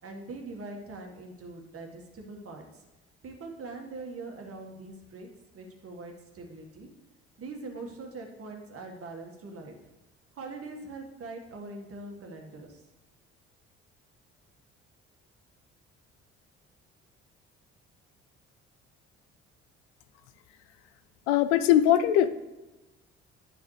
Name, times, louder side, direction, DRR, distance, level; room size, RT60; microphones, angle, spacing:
voice 1, 0.0-2.6 3.2-5.3 5.5-6.9 7.4-9.8 10.3-12.8, right 3 dB, 45° right, 2 dB, 1.7 m, -42 dB
voice 2, 21.3-22.3, left 11 dB, 85° left, 11 dB, 0.5 m, -21 dB
9.7 x 5.8 x 3.3 m, 1.1 s
hypercardioid pair, 55°, 32 cm